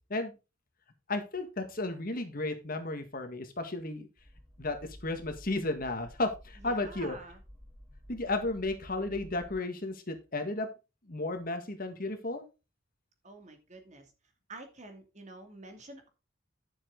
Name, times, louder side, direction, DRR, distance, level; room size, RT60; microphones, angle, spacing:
voice 1, 1.1-4.1 4.6-7.2 8.1-10.7 11.1-12.4, left 2 dB, 45° left, 7 dB, 1.8 m, -33 dB
sound 1, 4.2-9.5, equal, 5° left, 3.4 m, -52 dB
voice 2, 6.6-7.4 13.2-14.1 14.5-16.1, right 2 dB, 35° right, 6 dB, 2.6 m, -48 dB
11.0 x 7.4 x 3.9 m, 0.29 s
head